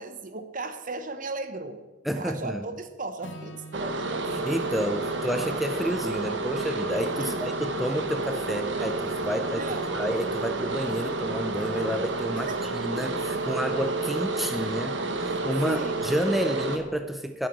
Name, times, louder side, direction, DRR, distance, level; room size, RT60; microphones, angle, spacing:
voice 1, 0.0-1.8 2.1-4.3 7.2-7.5 9.6-9.9 12.3-12.7 15.7-15.9, right 3 dB, 45° right, 10 dB, 0.9 m, -36 dB
voice 2, 2.0-2.6 4.3-9.7 9.9-17.5, equal, ahead, 7 dB, 0.5 m, -30 dB
Acoustic guitar / Strum, 3.2-7.5, right 1 dB, 90° left, 1.9 m, -48 dB
Bathroom Fan, 3.7-16.8, right 2 dB, 70° right, 1.1 m, -30 dB
9.6 x 7.6 x 7.5 m, 1.2 s
head